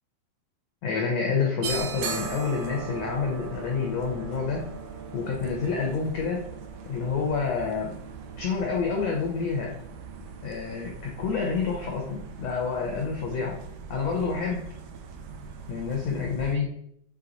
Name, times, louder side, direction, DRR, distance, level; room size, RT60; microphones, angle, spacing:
voice 1, 0.8-4.7 5.1-6.4 6.8-7.9 8.4-9.7 10.4-13.6 13.9-14.7 15.7-16.7, left 5 dB, 80° left, 0 dB, 1.5 m, -28 dB
sound 1, 1.6-16.6, right 6 dB, 80° right, 1.8 m, -39 dB
7.4 x 3.5 x 3.9 m, 0.71 s
omnidirectional pair, 4.3 m